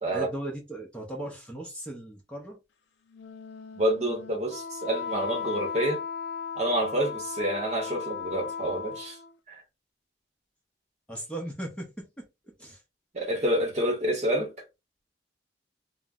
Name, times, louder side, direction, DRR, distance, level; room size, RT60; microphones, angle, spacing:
voice 1, 0.1-2.6 11.1-12.3 12.6-12.8, right 1 dB, 5° left, 0.7 m, -37 dB
Wind instrument woodwind instrument, 3.1-9.3, left 6 dB, 80° left, 0.4 m, -36 dB
voice 2, 3.8-6.0 6.6-9.2 9.5-9.6 13.1-14.5, right 1 dB, 40° right, 0.9 m, -28 dB
2.5 x 2.0 x 3.4 m
head